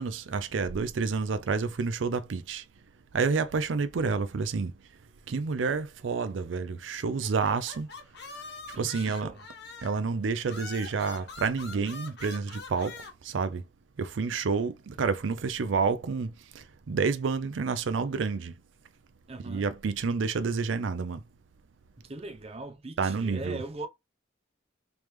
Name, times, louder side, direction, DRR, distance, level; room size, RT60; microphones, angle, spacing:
voice 1, 0.0-2.6 3.1-4.7 5.3-7.9 8.8-9.3 9.8-12.9 13.2-13.6 14.0-18.5 19.4-21.2 23.0-23.6, right 5 dB, 90° right, 0.5 m, -29 dB
sound 1, 7.2-10.1 10.5-13.1, left 4 dB, 65° left, 1.1 m, -44 dB
voice 2, 8.7-9.4 19.3-19.7 22.0-23.9, right 2 dB, 35° right, 0.6 m, -40 dB
3.4 x 3.2 x 3.0 m
head